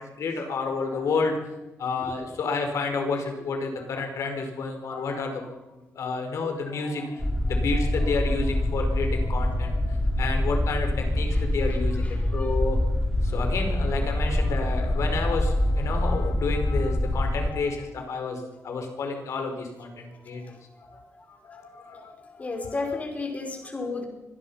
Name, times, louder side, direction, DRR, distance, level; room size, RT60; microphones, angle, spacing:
voice 1, 0.0-1.5 1.8-5.5 5.9-12.1 12.3-12.8 13.2-20.4 20.9-21.0 21.3-22.1 22.5-22.7, left 4 dB, 70° left, 4 dB, 5.1 m, -30 dB
sound 1, 7.2-17.5, left 1 dB, 5° left, 2.2 m, -25 dB
voice 2, 12.0-12.5 18.6-18.8 21.2-21.3 21.5-21.6 22.2-24.0, left 3 dB, 30° left, 3 dB, 4.9 m, -33 dB
24.5 x 19.5 x 5.8 m, 1.0 s
wide cardioid pair, 140°, 5 cm